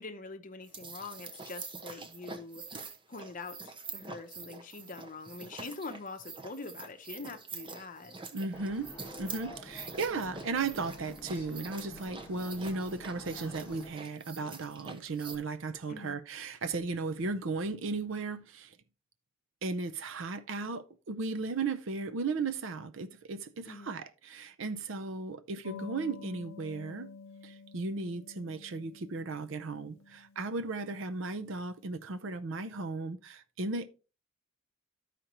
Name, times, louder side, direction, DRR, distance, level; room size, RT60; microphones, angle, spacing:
voice 1, 0.0-2.7 3.1-8.2 15.9-16.2 23.7-23.9, left 3 dB, 40° left, 0.8 m, -44 dB
sound 1, 0.6-15.4, right 4 dB, 25° right, 0.7 m, -46 dB
voice 2, 8.3-8.9 9.2-18.8 19.6-27.1 27.4-33.9, right 3 dB, 65° right, 0.6 m, -36 dB
sound 2, 8.5-13.9, left 1 dB, 10° left, 1.8 m, -48 dB
sound 3, 25.6-31.8, left 5 dB, 80° left, 0.6 m, -50 dB
12.5 x 5.1 x 3.0 m
head